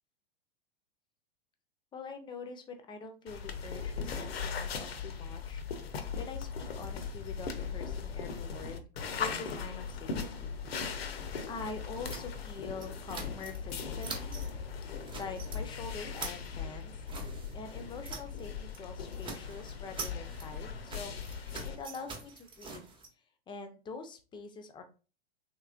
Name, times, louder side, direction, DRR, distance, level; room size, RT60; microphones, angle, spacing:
voice 1, 1.9-8.8 9.2-10.6 10.9-14.4 15.1-16.9 17.5-21.1 21.6-22.8 23.5-24.8, left 4 dB, 15° left, 6 dB, 0.5 m, -45 dB
sound 1, 3.3-21.8, left 6 dB, 75° left, 0.7 m, -39 dB
sound 2, 12.0-13.7 14.0-14.5 14.9-15.6 15.9-18.4 18.7-18.9 19.1-23.1, right 4 dB, 15° right, 0.8 m, -45 dB
3.2 x 3.2 x 2.4 m, 0.34 s
hypercardioid pair, 100°, 31 cm